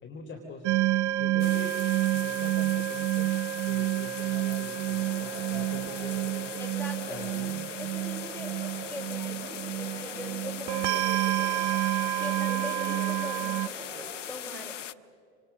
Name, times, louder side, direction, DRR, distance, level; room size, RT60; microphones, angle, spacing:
voice 1, 0.0-0.7 1.2-1.8 2.1-6.3 7.1-7.7, left 2 dB, 30° left, 2 dB, 4.0 m, -43 dB
sound 1, 0.6-13.7, right 16 dB, 75° right, 0.6 m, -29 dB
sound 2, 1.4-14.9, left 11 dB, 85° left, 0.7 m, -40 dB
sound 3, 4.9-14.1, right 3 dB, 20° right, 8.0 m, -44 dB
voice 2, 6.6-7.2 7.8-8.5 8.9-11.1 12.2-13.7 14.3-14.8, equal, 5° left, 3 dB, 4.6 m, -41 dB
29.5 x 26.5 x 6.3 m, 2.4 s
hypercardioid pair, 75°, 36 cm